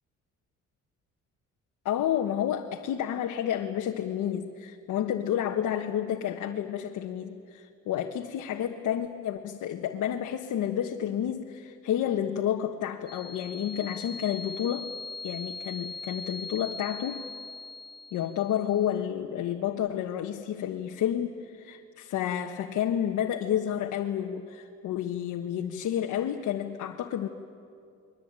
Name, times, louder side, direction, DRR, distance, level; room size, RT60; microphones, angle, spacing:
voice 1, 1.8-14.9 15.2-17.2 18.1-27.3, left 10 dB, 80° left, 2 dB, 1.3 m, -30 dB
sound 1, 13.1-18.7, left 3 dB, 35° left, 0.9 m, -40 dB
30.0 x 22.5 x 9.0 m, 2.4 s
cardioid pair, 90°, 30 cm